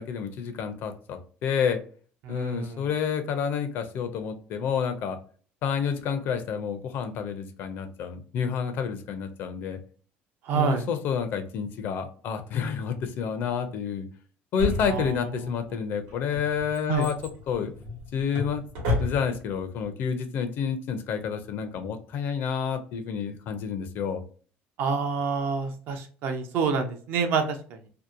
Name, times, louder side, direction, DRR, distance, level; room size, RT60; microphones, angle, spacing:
voice 1, 0.0-1.8 2.3-5.2 5.6-9.8 10.5-14.1 14.5-17.2 17.5-17.7 18.1-18.6 19.0-24.2, left 7 dB, 55° left, 8 dB, 0.5 m, -29 dB
voice 2, 2.2-2.9 10.4-10.9 14.9-15.3 16.9-17.1 24.8-27.8, right 5 dB, 60° right, 6 dB, 0.5 m, -27 dB
Drawer open or close, 14.6-15.5 16.1-19.6 19.8-19.9, left 2 dB, 85° right, 1.1 m, -31 dB
2.7 x 2.1 x 2.4 m, 0.42 s
cardioid pair, 145°, 4 cm